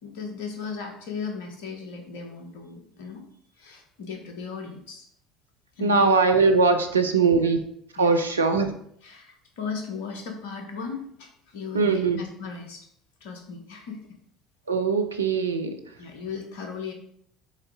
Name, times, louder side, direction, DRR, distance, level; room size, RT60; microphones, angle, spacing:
voice 1, 0.0-3.2 3.6-5.1 5.8-6.1 8.0-8.2 8.5-8.6 9.0-12.9 13.2-14.1 16.0-16.9, left 5 dB, 65° left, 4 dB, 1.2 m, -36 dB
voice 2, 5.8-7.6 7.9-8.7 11.7-12.2 14.7-15.9, right 4 dB, 85° right, 6 dB, 0.6 m, -21 dB
7.2 x 4.0 x 3.7 m, 0.67 s
figure-of-eight pair, 65°, 0 cm